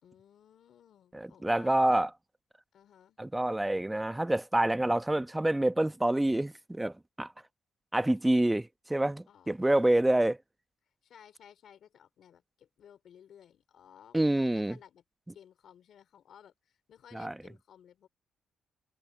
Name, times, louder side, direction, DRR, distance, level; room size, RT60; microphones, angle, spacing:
voice 1, 0.0-1.8 2.7-3.2 9.3-9.9 11.0-15.0 15.3-18.1, left 9 dB, 70° left, 3.0 m, -56 dB
voice 2, 1.1-2.1 3.2-7.3 7.9-10.4 14.1-14.8 17.1-17.3, right 1 dB, 10° right, 1.1 m, -27 dB
supercardioid pair, 60°, 0 cm